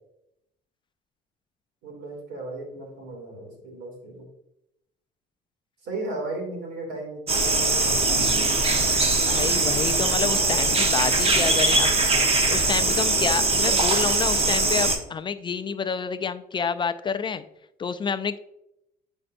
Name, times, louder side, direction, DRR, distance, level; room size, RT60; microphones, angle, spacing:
voice 1, 1.8-4.3 5.8-7.9 10.3-10.5, right 2 dB, 85° right, 0 dB, 2.6 m, -35 dB
sound 1, 7.3-15.0, right 2 dB, 35° right, 1.0 m, -21 dB
voice 2, 9.3-11.9 12.5-17.4 17.8-18.4, left 6 dB, 30° left, 12 dB, 0.4 m, -28 dB
8.7 x 5.3 x 2.6 m, 0.82 s
cardioid pair, 110°, 17 cm